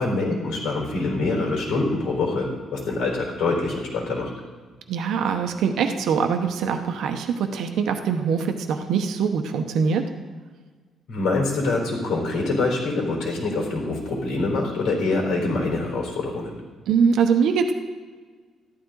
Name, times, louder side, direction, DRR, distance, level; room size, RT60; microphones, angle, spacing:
voice 1, 0.0-4.3 11.1-16.5, left 3 dB, 75° left, -1 dB, 4.0 m, -25 dB
voice 2, 4.9-10.1 16.9-17.7, right 6 dB, 70° right, 5 dB, 0.9 m, -23 dB
13.5 x 11.5 x 3.9 m, 1.4 s
cardioid pair, 170°, 0 cm